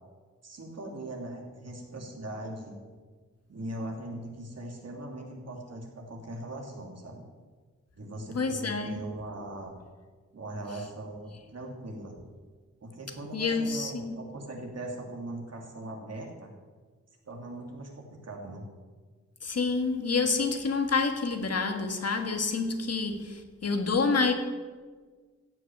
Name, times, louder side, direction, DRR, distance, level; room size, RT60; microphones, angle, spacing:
voice 1, 0.4-2.8 3.5-7.3 7.9-9.7 10.3-12.2 12.8-16.5 17.3-18.7, right 1 dB, 55° right, 2.7 m, -40 dB
voice 2, 8.3-9.0 13.3-14.1 19.4-24.3, left 4 dB, 55° left, 1.5 m, -28 dB
16.0 x 6.2 x 9.2 m
wide cardioid pair, 170°, 30 cm